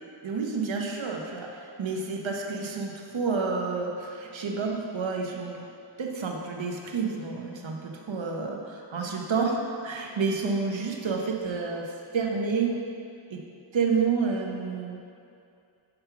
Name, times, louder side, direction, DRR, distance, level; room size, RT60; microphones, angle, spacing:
voice 1, 0.2-5.7 6.0-12.8 13.3-13.4 13.7-15.0, right 4 dB, 85° right, 1 dB, 0.9 m, -29 dB
5.7 x 5.4 x 5.8 m, 2.5 s
wide cardioid pair, 65°, 45 cm